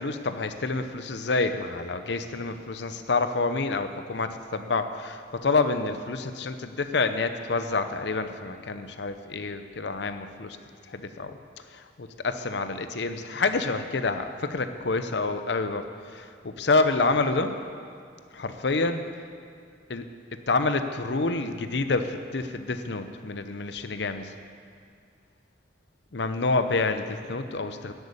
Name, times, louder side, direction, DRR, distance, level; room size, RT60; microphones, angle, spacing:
voice 1, 0.0-10.6 10.9-11.4 11.7-17.6 18.3-19.0 19.9-20.1 20.5-24.3 26.1-27.9, left 3 dB, 70° left, 9 dB, 0.7 m, -28 dB
12.0 x 8.2 x 8.6 m, 2.3 s
head